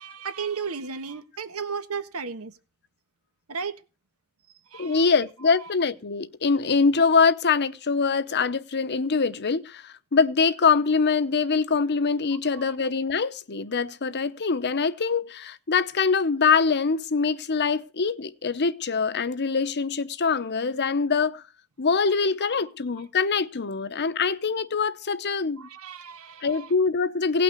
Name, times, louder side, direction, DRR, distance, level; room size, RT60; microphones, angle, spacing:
voice 1, 0.0-2.5 3.5-3.7 4.7-5.1 12.5-12.7 25.6-26.7, right 5 dB, 85° right, 1.4 m, -34 dB
voice 2, 4.8-21.4 21.8-25.7 26.4-27.4, left 5 dB, 50° left, 0.8 m, -24 dB
17.5 x 5.9 x 8.3 m
head